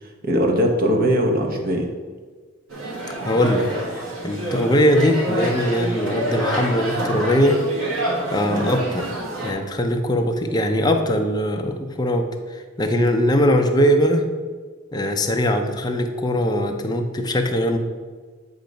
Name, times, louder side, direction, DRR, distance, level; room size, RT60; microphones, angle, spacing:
voice 1, 0.0-1.9 8.5-8.7, equal, 45° right, 2 dB, 0.8 m, -21 dB
sound 1, 2.7-9.5, right 1 dB, 75° right, 1.4 m, -27 dB
voice 2, 3.2-3.7 4.2-7.6 8.3-9.0 9.4-14.3 14.9-17.8, equal, 20° left, 4 dB, 0.5 m, -21 dB
7.8 x 2.8 x 5.1 m, 1.5 s
head